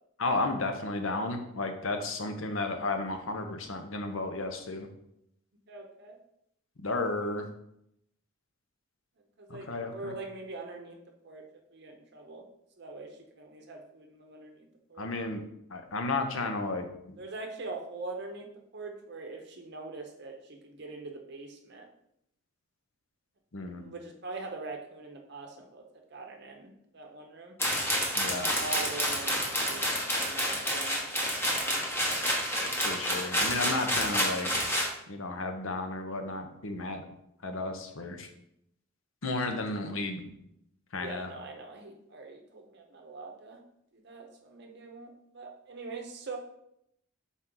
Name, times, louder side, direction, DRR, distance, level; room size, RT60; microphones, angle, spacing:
voice 1, 0.2-4.9 6.8-7.5 9.5-10.1 15.0-15.4 15.7-17.2 23.5-23.9 28.1-28.5 32.8-34.7 35.1-37.1 37.4-38.3 39.2-40.3 40.9-41.3, left 2 dB, 70° left, 6 dB, 0.8 m, -33 dB
voice 2, 5.7-6.1 9.4-11.0 11.2-11.4 11.7-12.4 12.8-15.1 17.2-18.5 18.7-21.8 23.8-25.8 26.1-27.5 28.0-31.3 31.6-32.2 41.0-43.6 43.9-46.4, right 3 dB, 50° right, 3 dB, 0.7 m, -43 dB
sound 1, 27.6-34.9, equal, 10° left, 1.0 m, -29 dB
5.9 x 4.1 x 3.8 m, 0.77 s
head